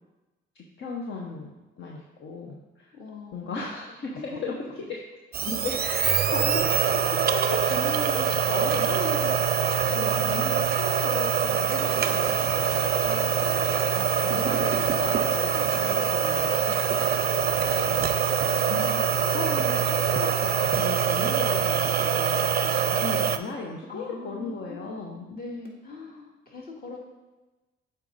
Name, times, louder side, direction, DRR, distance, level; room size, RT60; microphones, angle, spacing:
voice 1, 0.5-2.9 3.3-4.1 4.4-5.0 5.4-12.7 13.0-13.8 14.2-16.6 17.7-18.1 18.6-22.5 22.7-25.3, left 3 dB, 65° left, -1 dB, 0.9 m, -36 dB
voice 2, 2.9-3.7 4.1-4.4 6.6-6.7 9.8-10.5 16.0-16.3 16.6-17.1 23.9-24.9 25.3-27.0, left 3 dB, 45° left, -3 dB, 2.1 m, -43 dB
sound 1, 5.3-23.4, right 8 dB, 45° right, 0.5 m, -24 dB
8.1 x 4.2 x 4.0 m, 1.1 s
cardioid pair, 70°, 21 cm